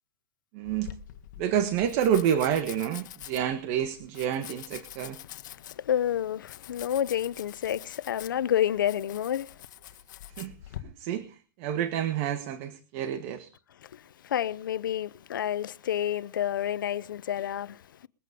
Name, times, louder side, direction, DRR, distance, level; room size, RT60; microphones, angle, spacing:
voice 1, 0.5-0.9 1.4-5.2 10.4-10.5 10.8-13.5, right 9 dB, 45° right, 1.4 m, -28 dB
Domestic sounds home sounds, 0.6-10.8, left 13 dB, 65° left, 1.5 m, -45 dB
voice 2, 5.7-9.5 13.9-17.8, left 10 dB, 90° left, 0.7 m, -29 dB
21.5 x 8.3 x 5.1 m
hypercardioid pair, 145°, 11 cm